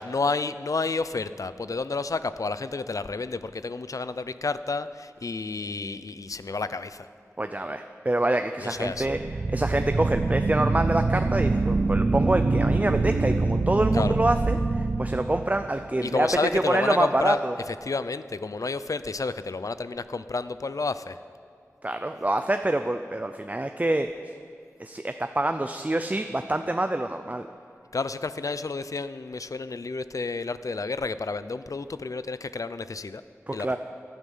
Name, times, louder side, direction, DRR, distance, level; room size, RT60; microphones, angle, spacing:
voice 1, 0.0-7.1 8.6-9.1 13.9-14.2 16.0-17.4 17.7-21.2 27.9-33.2 33.5-33.8, left 3 dB, 75° left, 13 dB, 0.5 m, -30 dB
voice 2, 7.4-9.2 9.5-16.3 16.5-17.5 21.8-24.1 24.8-27.5 33.5-33.8, right 1 dB, 25° right, 7 dB, 0.5 m, -26 dB
sound 1, 8.9-15.9, right 3 dB, 70° right, 0.7 m, -25 dB
17.0 x 12.0 x 5.5 m, 2.4 s
wide cardioid pair, 60°, 6 cm